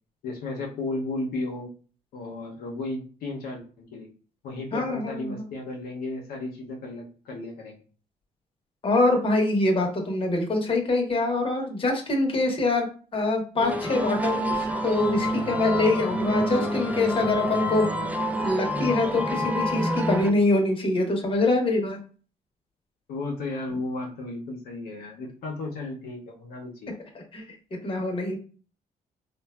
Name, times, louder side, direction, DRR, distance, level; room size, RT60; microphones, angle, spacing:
voice 1, 0.2-1.7 2.1-3.6 3.9-4.1 4.4-7.8 23.1-26.9, left 2 dB, 85° left, -1 dB, 0.6 m, -34 dB
voice 2, 4.7-5.5 8.8-12.9 13.1-17.9 18.4-22.0 27.3-27.4 27.8-28.4, left 2 dB, 35° left, 2 dB, 0.8 m, -24 dB
sound 1, 13.6-20.3, equal, 10° right, 0.3 m, -28 dB
3.2 x 2.2 x 2.2 m, 0.39 s
cardioid pair, 85°, 16 cm